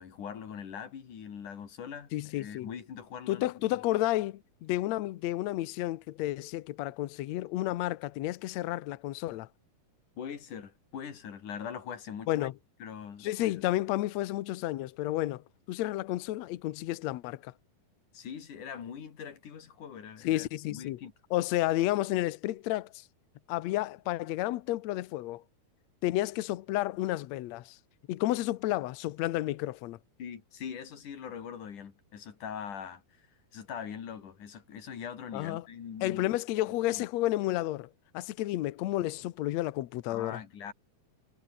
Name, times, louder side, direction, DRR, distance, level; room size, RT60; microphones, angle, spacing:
voice 1, 0.0-2.1 2.4-3.8 10.2-12.5 12.8-13.6 18.1-21.1 30.2-33.3 33.5-36.3 36.9-37.0 40.1-40.7, left 7 dB, 60° left, 4.2 m, -42 dB
voice 2, 2.1-2.7 3.3-9.5 12.3-12.5 13.2-17.5 20.2-21.0 21.3-23.0 23.5-25.4 26.0-27.8 28.1-30.0 35.3-35.6 36.0-40.4, left 16 dB, 85° left, 1.5 m, -31 dB
omnidirectional pair, 4.3 m